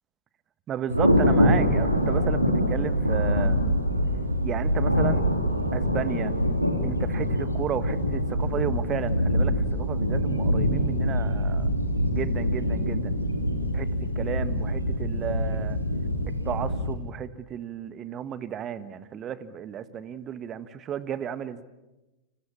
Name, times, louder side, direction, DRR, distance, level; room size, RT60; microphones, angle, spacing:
voice 1, 0.7-3.7 4.4-5.2 5.7-6.3 6.8-11.7 12.1-13.1 13.7-13.9 14.1-15.8 16.4-21.6, right 9 dB, 30° right, 14 dB, 1.5 m, -33 dB
Thunder, 0.9-16.9, equal, 90° right, 3.0 m, -24 dB
30.0 x 27.0 x 7.3 m, 1.0 s
figure-of-eight pair, 90°, 0 cm